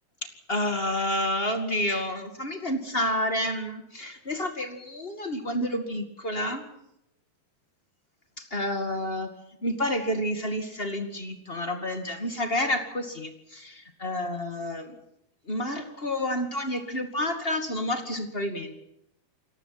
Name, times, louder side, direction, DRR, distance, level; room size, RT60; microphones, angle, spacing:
voice 1, 0.2-6.6 8.4-9.3 9.6-14.9 15.4-18.7, left 1 dB, 30° left, 7 dB, 1.0 m, -29 dB
29.0 x 19.0 x 5.9 m, 0.81 s
omnidirectional pair, 4.9 m